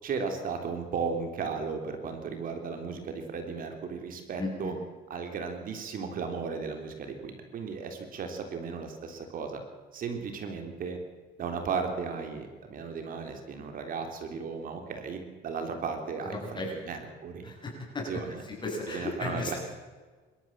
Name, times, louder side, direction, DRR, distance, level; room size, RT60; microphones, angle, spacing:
voice 1, 0.0-4.7 5.1-9.6 9.9-11.0 11.4-17.5 18.1-18.4 18.9-19.5, right 5 dB, 55° right, 5 dB, 3.5 m, -35 dB
voice 2, 4.4-4.7 16.2-16.8 17.4-19.6, left 2 dB, 25° left, 0 dB, 7.7 m, -35 dB
26.0 x 13.5 x 7.5 m, 1.4 s
cardioid pair, 110°, 17 cm